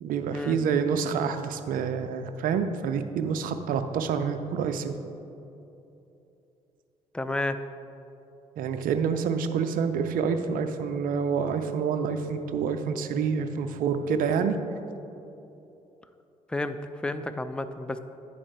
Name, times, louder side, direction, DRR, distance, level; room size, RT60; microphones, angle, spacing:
voice 1, 0.0-5.0 8.6-14.6, right 6 dB, 50° right, 8 dB, 0.5 m, -27 dB
voice 2, 7.1-7.6 16.5-18.0, left 2 dB, 5° left, 10 dB, 0.4 m, -31 dB
9.9 x 4.5 x 4.3 m, 2.9 s
figure-of-eight pair, 45°, 19 cm